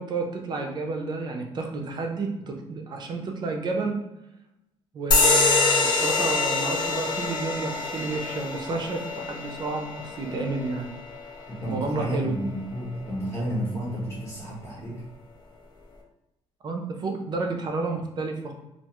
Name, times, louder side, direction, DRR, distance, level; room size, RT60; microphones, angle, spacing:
voice 1, 0.0-4.0 4.9-10.9 11.7-12.4 16.6-18.5, right 3 dB, 40° right, 2 dB, 0.5 m, -31 dB
sound 1, 5.1-12.2, left 3 dB, 40° left, 0.5 m, -25 dB
voice 2, 11.5-14.9, equal, 20° left, -6 dB, 0.9 m, -31 dB
2.4 x 2.3 x 2.9 m, 0.91 s
cardioid pair, 125°, 11 cm